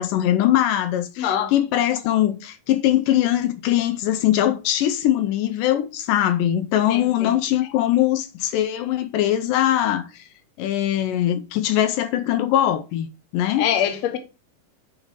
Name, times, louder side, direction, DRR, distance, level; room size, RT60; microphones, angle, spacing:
voice 1, 0.0-10.2 10.6-13.1 13.3-13.7, left 12 dB, 80° left, 2.2 m, -21 dB
voice 2, 1.2-1.5 6.9-7.4 13.6-14.2, left 9 dB, 65° left, 1.8 m, -24 dB
7.4 x 4.7 x 4.8 m
omnidirectional pair, 3.9 m